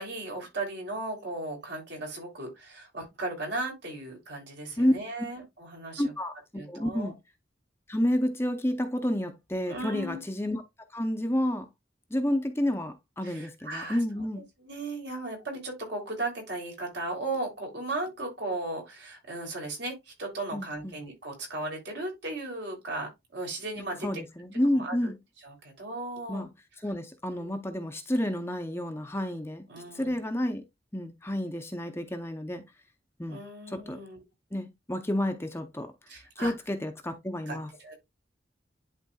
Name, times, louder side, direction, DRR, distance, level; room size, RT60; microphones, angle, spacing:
voice 1, 0.0-6.1 6.5-7.1 9.7-10.2 13.2-14.0 14.6-24.1 24.7-25.1 25.4-26.4 27.3-27.5 29.7-30.3 33.3-34.2 36.1-36.5 37.5-37.9, right 2 dB, 65° right, 3.1 m, -36 dB
voice 2, 6.0-7.2 7.9-10.6 10.9-11.7 12.1-14.4 20.5-21.0 23.8-25.1 26.3-26.5 26.8-29.7 29.9-30.6 30.9-32.6 33.2-34.0 34.5-35.9 36.4-37.7, left 1 dB, 15° left, 0.7 m, -30 dB
11.0 x 3.7 x 2.3 m
head